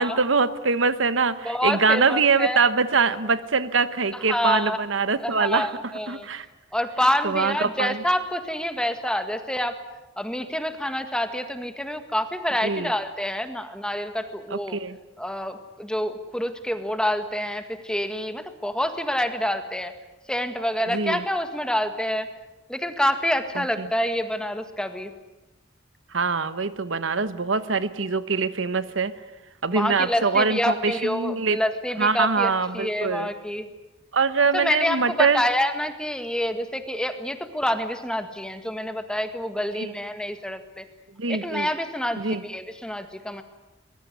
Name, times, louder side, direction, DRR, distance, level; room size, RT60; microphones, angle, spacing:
voice 1, 0.0-5.7 6.1-6.5 7.2-8.0 12.6-12.9 14.5-15.0 20.9-21.2 23.5-23.9 26.1-29.1 29.6-31.6 32.0-33.3 34.1-35.4 39.8-39.9 41.2-41.7 42.2-42.4, right 4 dB, 75° right, 13 dB, 1.1 m, -23 dB
voice 2, 1.4-2.6 4.1-4.8 5.2-6.3 6.7-9.8 10.2-14.8 15.2-19.9 20.3-22.3 22.7-25.1 29.7-33.7 34.5-40.9 41.3-43.4, equal, 5° left, 8 dB, 1.8 m, -27 dB
23.5 x 21.0 x 9.6 m, 1.0 s
head